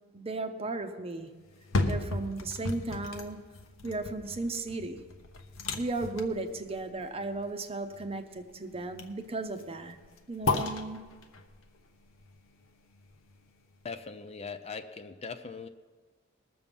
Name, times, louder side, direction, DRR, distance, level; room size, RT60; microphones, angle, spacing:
voice 1, 0.1-1.3 1.8-3.5 3.8-5.0 5.7-10.0 10.3-11.0, right 2 dB, 30° right, 7 dB, 0.8 m, -35 dB
sound 1, 1.4-13.5 13.9-14.0, left 2 dB, 70° left, 1.0 m, -36 dB
voice 2, 13.8-15.7, left 4 dB, 30° left, 9 dB, 0.5 m, -40 dB
20.0 x 7.0 x 5.3 m, 1.4 s
head